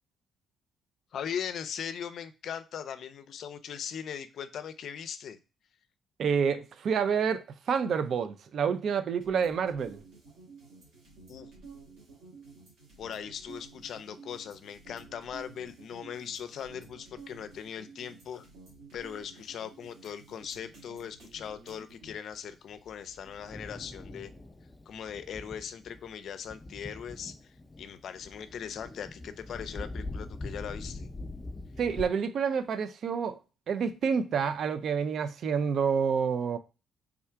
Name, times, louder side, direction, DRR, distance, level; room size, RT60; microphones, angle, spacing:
voice 1, 1.1-5.4 11.3-11.5 13.0-18.4 18.9-24.3 24.9-31.1, left 8 dB, 65° left, 0.4 m, -40 dB
voice 2, 6.2-10.0 31.8-33.4 33.7-36.6, right 6 dB, 60° right, 0.4 m, -28 dB
sound 1, 9.2-22.1, right 4 dB, 80° right, 1.6 m, -52 dB
Thunder, 22.3-32.0, left 2 dB, 20° left, 0.5 m, -43 dB
3.5 x 2.4 x 4.4 m
cardioid pair, 90°, 0 cm